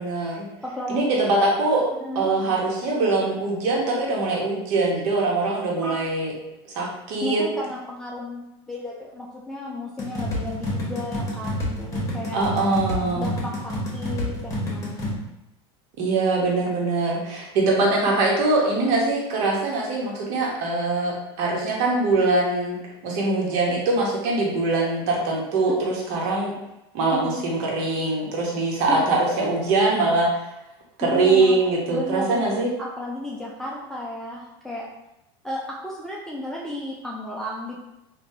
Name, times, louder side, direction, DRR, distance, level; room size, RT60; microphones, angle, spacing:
voice 1, 0.0-0.5 0.9-1.8 2.1-6.3 6.7-7.4 12.3-13.3 16.0-22.8 23.0-26.5 26.9-30.4 31.0-32.7, right 3 dB, 60° right, -2 dB, 1.0 m, -22 dB
voice 2, 0.6-1.2 2.0-2.3 5.8-6.0 7.2-12.4 13.2-15.2 27.1-27.5 28.9-29.2 31.0-31.5 31.9-34.9 35.4-37.8, left 1 dB, 5° left, -5 dB, 0.4 m, -33 dB
sound 1, 10.0-15.1, left 1 dB, 20° left, 1.0 m, -29 dB
3.2 x 2.2 x 2.7 m, 0.92 s
supercardioid pair, 115°, 14 cm